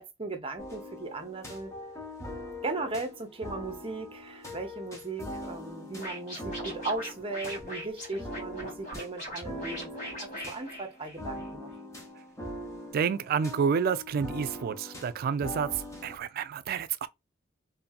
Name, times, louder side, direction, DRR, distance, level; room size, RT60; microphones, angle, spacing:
voice 1, 0.0-1.7 2.6-11.7, right 3 dB, 30° right, 0.7 m, -37 dB
sound 1, 0.6-16.2, left 1 dB, 15° left, 0.9 m, -42 dB
Scratching (performance technique), 6.0-11.5, equal, 40° left, 1.6 m, -40 dB
voice 2, 12.9-17.1, right 6 dB, 50° right, 0.3 m, -29 dB
2.6 x 2.6 x 2.3 m
head